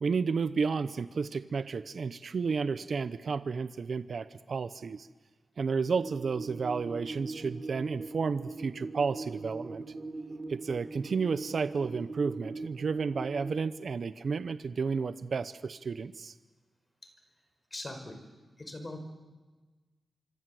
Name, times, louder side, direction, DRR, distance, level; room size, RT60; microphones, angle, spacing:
voice 1, 0.0-5.1 5.6-9.8 10.5-16.3, right 5 dB, 60° right, 13 dB, 0.8 m, -32 dB
sound 1, 6.0-13.5, right 3 dB, 35° right, 4.0 m, -41 dB
voice 2, 17.7-18.2 18.6-19.0, left 2 dB, 30° left, 6 dB, 4.9 m, -40 dB
25.5 x 25.5 x 7.8 m, 1.3 s
wide cardioid pair, 100°, 0 cm